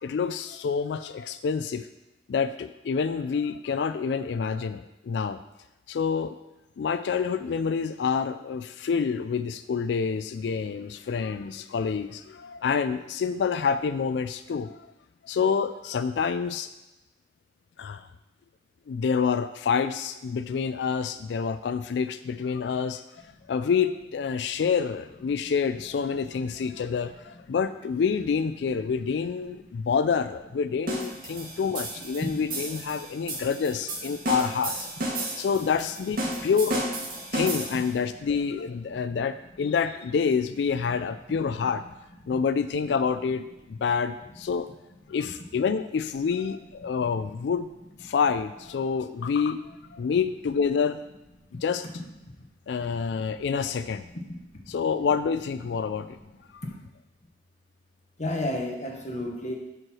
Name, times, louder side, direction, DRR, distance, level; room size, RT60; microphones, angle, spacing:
voice 1, 0.0-1.9 2.3-5.4 5.9-6.4 6.8-14.8 15.2-16.7 17.8-18.1 18.9-23.0 23.5-36.9 37.3-41.8 42.3-44.7 45.1-47.7 48.0-49.6 49.9-51.0 51.6-51.9 52.7-54.0 54.7-56.2 56.5-56.6, left 6 dB, 70° left, 11 dB, 0.3 m, -27 dB
sound 1, 30.9-38.0, right 1 dB, 55° right, 1.9 m, -33 dB
voice 2, 58.2-59.5, left 1 dB, 40° left, 0 dB, 1.3 m, -31 dB
7.7 x 4.6 x 6.2 m, 0.96 s
head